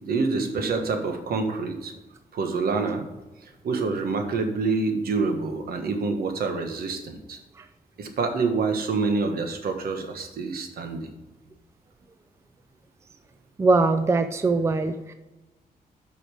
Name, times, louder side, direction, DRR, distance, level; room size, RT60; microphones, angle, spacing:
voice 1, 0.0-1.9 2.3-3.0 3.6-7.4 8.0-11.1, right 4 dB, 70° right, 5 dB, 1.4 m, -27 dB
voice 2, 13.6-15.1, right 3 dB, 15° right, 9 dB, 0.4 m, -21 dB
8.3 x 5.7 x 4.9 m, 1.1 s
wide cardioid pair, 160°, 16 cm